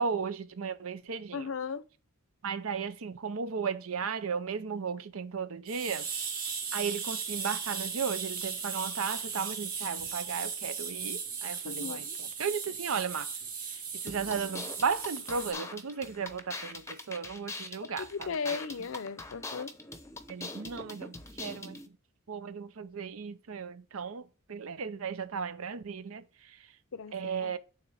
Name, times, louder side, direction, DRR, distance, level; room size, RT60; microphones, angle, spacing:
voice 1, 0.0-1.5 2.4-6.1 6.7-13.3 13.7-18.6 20.3-21.8 22.3-26.6 27.1-27.6, right 6 dB, 75° right, 0.6 m, -35 dB
voice 2, 1.3-1.8 11.6-12.2 18.0-19.7 26.9-27.6, left 5 dB, 65° left, 0.6 m, -37 dB
sound 1, 5.7-15.5, right 6 dB, 45° right, 1.6 m, -37 dB
sound 2, 14.1-21.9, left 3 dB, 15° left, 0.7 m, -43 dB
9.2 x 3.8 x 3.4 m
head